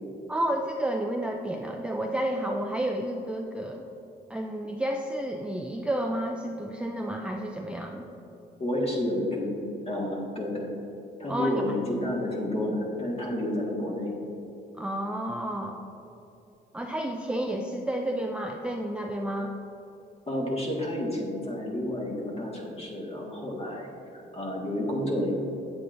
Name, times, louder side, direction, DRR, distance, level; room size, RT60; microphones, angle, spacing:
voice 1, 0.3-3.8 4.3-8.1 11.3-11.7 14.8-15.8 16.7-19.6, right 1 dB, 5° right, 1 dB, 0.4 m, -31 dB
voice 2, 8.6-10.7 11.2-14.2 20.3-23.9 24.3-25.3, left 1 dB, 30° left, -2 dB, 1.7 m, -30 dB
8.4 x 8.3 x 2.6 m, 2.9 s
cardioid pair, 90°, 20 cm